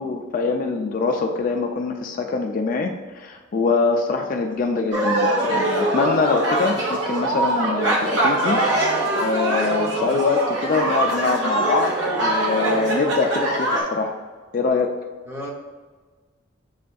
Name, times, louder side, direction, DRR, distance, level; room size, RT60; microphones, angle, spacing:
voice 1, 0.0-8.6 9.1-14.1 14.5-14.9, left 4 dB, 45° left, 3 dB, 0.3 m, -24 dB
sound 1, 4.9-13.8, right 1 dB, 70° right, 0.9 m, -22 dB
voice 2, 10.0-10.3 15.3-15.5, left 1 dB, 15° right, -2 dB, 0.7 m, -34 dB
7.4 x 2.6 x 2.3 m, 1.4 s
head